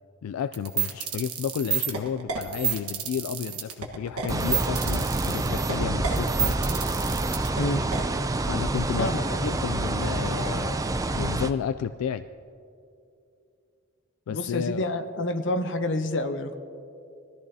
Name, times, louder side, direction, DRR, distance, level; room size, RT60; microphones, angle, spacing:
voice 1, 0.2-6.6 8.5-9.1 9.4-12.2 14.3-14.9, left 8 dB, 80° left, 12 dB, 0.3 m, -31 dB
sound 1, 0.5-8.0, right 8 dB, 90° right, 1.4 m, -29 dB
sound 2, 4.3-11.5, right 2 dB, 15° right, 0.3 m, -27 dB
voice 2, 9.0-9.5 14.3-16.6, left 1 dB, 55° left, 7 dB, 0.8 m, -28 dB
20.5 x 14.0 x 2.8 m, 2.6 s
head